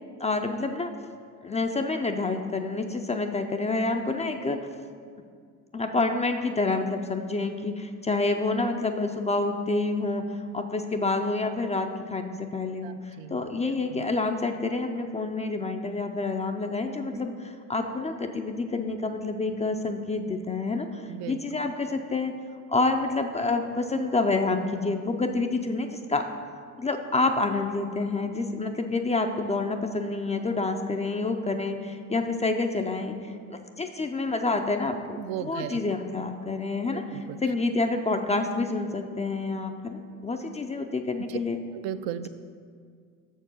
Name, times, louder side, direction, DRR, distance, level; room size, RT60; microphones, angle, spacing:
voice 1, 0.2-0.9 1.4-4.7 5.7-10.2 10.5-22.3 22.7-26.3 26.8-41.6, left 3 dB, 15° left, 5 dB, 0.4 m, -28 dB
voice 2, 12.8-14.0 21.1-21.4 35.2-35.8 36.9-37.4 41.3-41.4 41.7-42.3, right 11 dB, 65° right, 11 dB, 0.5 m, -36 dB
6.5 x 4.6 x 6.2 m, 2.1 s
hypercardioid pair, 70°, 45 cm